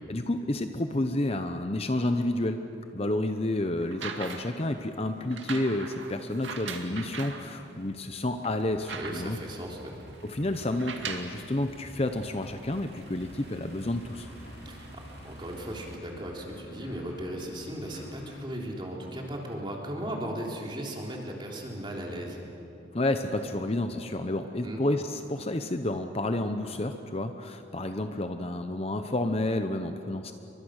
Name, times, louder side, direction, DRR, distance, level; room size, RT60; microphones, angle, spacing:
voice 1, 0.1-2.6 2.9-9.4 10.2-14.3 22.9-30.3, left 1 dB, 30° left, 7 dB, 0.8 m, -30 dB
sound 1, 1.5-16.0, right 1 dB, 60° right, 3.2 m, -52 dB
sound 2, 3.8-4.6 5.3-7.5 8.0-8.1 8.4-9.5 10.7-11.4 12.3-12.4, right 5 dB, 80° right, 2.2 m, -39 dB
voice 2, 8.9-9.9 14.7-22.4 24.6-24.8, right 1 dB, 25° right, -1 dB, 3.6 m, -37 dB
sound 3, 13.2-18.5, left 1 dB, 75° left, 3.4 m, -50 dB
30.0 x 24.0 x 6.5 m, 2.8 s
head